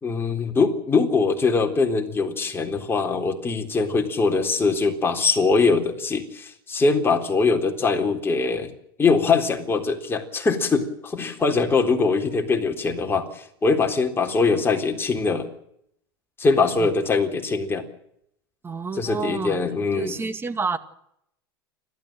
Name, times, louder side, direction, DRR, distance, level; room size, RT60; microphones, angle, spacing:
voice 1, 0.0-8.7 9.0-15.5 16.4-17.8 18.9-20.1, left 4 dB, 20° left, 3 dB, 3.8 m, -22 dB
voice 2, 18.6-19.6 19.9-20.8, right 5 dB, 20° right, 10 dB, 2.0 m, -29 dB
30.0 x 13.0 x 7.8 m, 0.75 s
hypercardioid pair, 105°, 12 cm